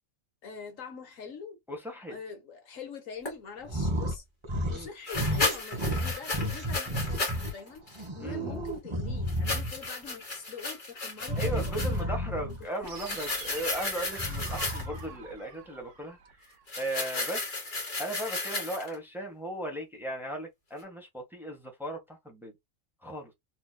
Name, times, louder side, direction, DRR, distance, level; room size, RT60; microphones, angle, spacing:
voice 1, 0.4-1.6 2.1-4.2 4.7-12.6 12.9-13.0, left 5 dB, 80° left, 1.7 m, -44 dB
voice 2, 1.7-2.2 4.7-4.9 8.2-8.6 11.4-16.5 16.8-17.4 18.0-22.5 23.0-23.3, right 1 dB, ahead, 1.4 m, -37 dB
sound 1, 3.3-3.4 5.1-7.5 7.9-8.0 9.3-12.0 12.8-15.0 16.7-18.9, left 3 dB, 40° left, 1.7 m, -34 dB
sound 2, 3.6-4.2 4.4-4.9 5.1-7.5 7.9-9.9 11.2-12.6 14.1-15.1, equal, 25° right, 1.1 m, -32 dB
sound 3, 12.8-16.8, right 6 dB, 70° right, 1.1 m, -46 dB
4.1 x 3.2 x 2.2 m
omnidirectional pair, 1.3 m